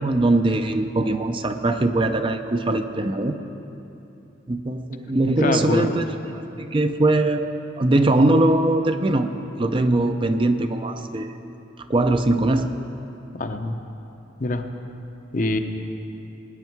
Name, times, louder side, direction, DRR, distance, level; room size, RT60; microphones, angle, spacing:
voice 1, 0.0-3.4 4.5-6.1 6.3-7.5 7.8-9.3 9.6-11.3 11.9-12.7, right 2 dB, 25° right, 7 dB, 0.5 m, -21 dB
voice 2, 5.4-6.0 13.3-13.8 14.4-14.6 15.3-15.6, left 2 dB, 45° left, 6 dB, 0.7 m, -24 dB
20.5 x 10.0 x 4.6 m, 2.8 s
head